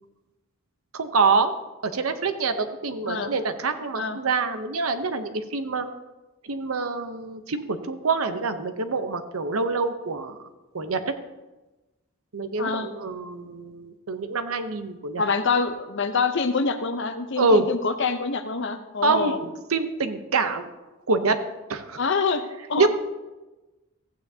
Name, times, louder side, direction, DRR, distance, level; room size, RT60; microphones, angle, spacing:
voice 1, 0.9-1.5 1.8-5.9 6.4-10.4 10.7-11.1 12.3-15.2 17.4-17.6 19.0-20.7 21.1-21.4 21.7-22.0 22.8-22.9, right 4 dB, 75° right, 9 dB, 0.8 m, -25 dB
voice 2, 12.6-12.9 15.2-19.4 22.0-22.9, left 4 dB, 55° left, 8 dB, 0.7 m, -26 dB
14.5 x 9.0 x 2.8 m, 1.1 s
head